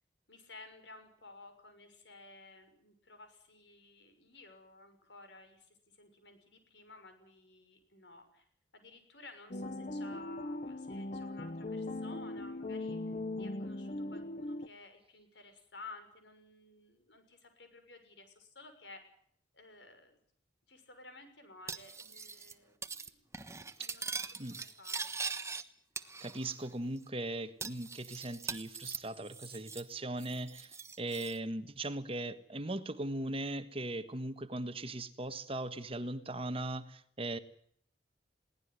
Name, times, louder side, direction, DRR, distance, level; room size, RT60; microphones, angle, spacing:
voice 1, 0.3-8.5 8.7-13.0 13.4-19.0 19.5-20.2 20.7-23.3 23.7-25.1, left 3 dB, 80° left, 8 dB, 6.6 m, -55 dB
sound 1, 9.5-14.7, left 2 dB, 45° left, 1.0 m, -39 dB
Cutlery silverware, 21.7-22.5 22.8-23.1 23.3-25.6 26.0-26.7 27.0-27.1 27.6-29.9 30.2-31.4, right 4 dB, 15° right, 1.3 m, -42 dB
voice 2, 26.2-30.7 31.0-37.4, right 1 dB, 30° right, 11 dB, 1.4 m, -39 dB
22.0 x 18.0 x 9.6 m, 0.65 s
head